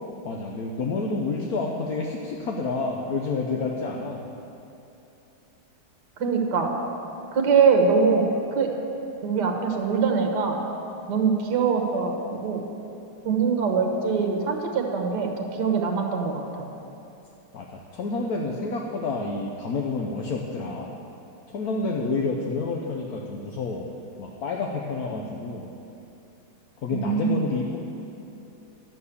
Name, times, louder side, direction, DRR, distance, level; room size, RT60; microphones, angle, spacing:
voice 1, 0.2-4.2 17.5-20.9 21.5-23.9 24.2-25.7 26.8-27.8, left 3 dB, 60° left, -1 dB, 1.1 m, -29 dB
voice 2, 6.2-6.7 7.3-8.7 9.2-10.6 11.1-12.1 12.4-12.7 13.2-16.6 26.9-27.5, right 5 dB, 60° right, 2 dB, 1.7 m, -23 dB
11.5 x 6.9 x 8.3 m, 2.9 s
omnidirectional pair, 2.2 m